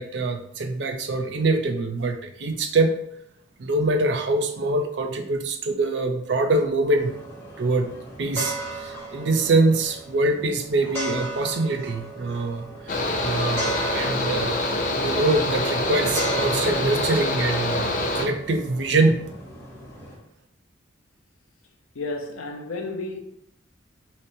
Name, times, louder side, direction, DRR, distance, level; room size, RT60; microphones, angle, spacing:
voice 1, 0.0-3.0 3.6-7.1 7.6-7.9 8.2-12.9 13.2-14.6 14.9-19.3, right 2 dB, 55° right, 0.4 m, -24 dB
sound 1, 7.0-20.2, right 2 dB, 10° left, 0.7 m, -36 dB
Mechanical fan, 12.9-18.2, left 1 dB, 40° left, 0.4 m, -25 dB
voice 2, 21.9-23.2, left 2 dB, 80° left, 0.6 m, -32 dB
5.4 x 2.0 x 2.6 m
head